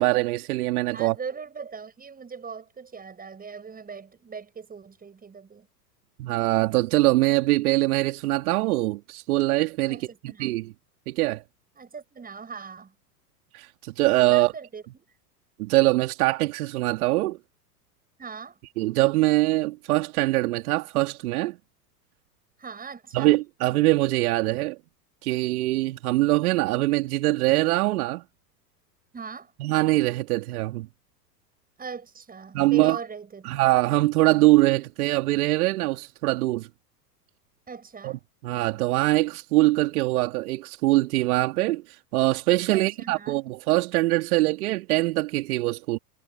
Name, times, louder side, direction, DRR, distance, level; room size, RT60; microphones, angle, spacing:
voice 1, 0.0-1.1 6.2-10.0 10.4-10.7 11.1-11.4 13.5-14.5 15.6-17.4 18.8-21.6 23.1-24.8 25.2-28.2 29.6-30.9 32.5-33.0 33.4-36.7 38.0-41.8 42.1-46.0, right 19 dB, 60° right, 3.3 m, -23 dB
voice 2, 0.9-5.7 9.9-10.6 11.8-12.9 14.3-15.1 18.2-18.6 22.6-23.3 29.1-29.5 31.8-33.5 37.7-38.2 42.7-43.4, right 5 dB, 20° right, 7.2 m, -40 dB
hypercardioid pair, 100°, 49 cm